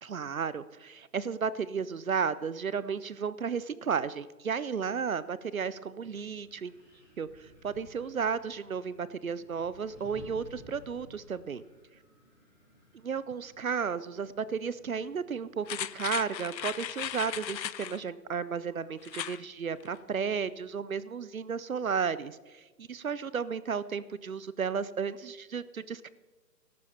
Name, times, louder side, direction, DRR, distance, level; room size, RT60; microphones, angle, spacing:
voice 1, 0.0-6.7 7.2-11.6 13.0-26.1, right 6 dB, 55° right, 17 dB, 0.5 m, -33 dB
Wind, 5.9-15.8, equal, 5° right, 2.8 m, -56 dB
sound 1, 15.7-18.0 19.0-19.4 19.8-19.9, left 11 dB, 85° left, 0.6 m, -37 dB
14.0 x 12.0 x 4.3 m, 1.2 s
hypercardioid pair, 180°, 50 cm